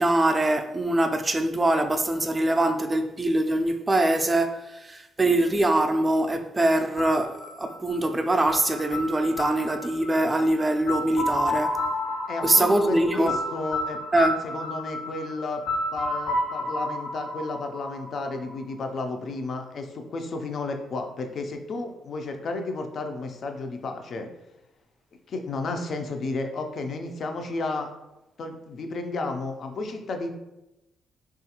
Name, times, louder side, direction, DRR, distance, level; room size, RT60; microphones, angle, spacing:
voice 1, 0.0-11.8 12.4-13.4 14.1-14.4, right 1 dB, 20° right, 0.3 m, -23 dB
sound 1, 7.0-18.7, left 1 dB, 75° left, 1.2 m, -31 dB
voice 2, 12.3-14.0 14.4-15.6 15.9-24.3 25.3-27.9 28.4-30.3, left 3 dB, 55° left, 0.4 m, -32 dB
3.1 x 2.4 x 2.8 m
cardioid pair, 90°, 0 cm